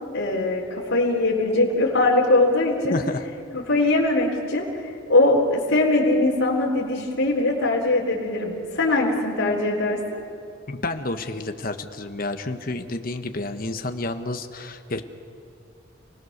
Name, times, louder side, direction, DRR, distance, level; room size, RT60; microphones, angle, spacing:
voice 1, 0.1-3.0 3.5-4.7 5.1-10.2, left 2 dB, 85° left, -5 dB, 3.9 m, -21 dB
voice 2, 2.9-3.2 10.7-15.0, left 2 dB, 45° left, 7 dB, 1.3 m, -30 dB
30.0 x 19.0 x 6.7 m, 2.4 s
head